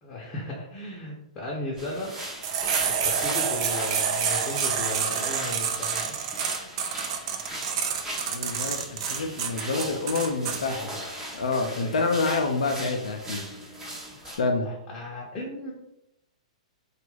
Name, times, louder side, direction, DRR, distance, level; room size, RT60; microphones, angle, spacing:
voice 1, 0.0-2.1 2.8-6.1 11.7-12.1 14.2-14.3 14.9-15.7, left 2 dB, 25° left, -3 dB, 0.7 m, -36 dB
sound 1, 1.8-14.4, right 1 dB, 15° right, 0.7 m, -38 dB
sound 2, 2.4-10.6, right 7 dB, 45° right, 0.4 m, -28 dB
voice 2, 8.3-11.0 11.3-13.4 14.4-14.7, left 3 dB, 75° left, 3 dB, 0.4 m, -27 dB
2.8 x 2.3 x 3.1 m, 0.83 s
hypercardioid pair, 115°, 4 cm